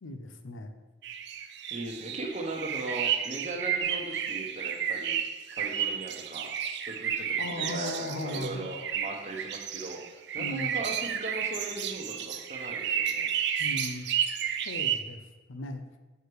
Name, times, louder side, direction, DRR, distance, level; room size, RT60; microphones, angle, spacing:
voice 1, 0.0-0.7 7.4-8.7 10.4-10.8 13.6-14.1 14.6-15.2 15.5-15.8, left 1 dB, 75° left, 7 dB, 0.6 m, -37 dB
sound 1, 1.0-15.0, right 8 dB, 55° right, 0.5 m, -32 dB
voice 2, 1.7-5.2 5.5-6.5 6.8-10.0 10.3-13.3, right 2 dB, 35° right, 1 dB, 1.0 m, -38 dB
6.5 x 4.8 x 4.7 m, 1.2 s
head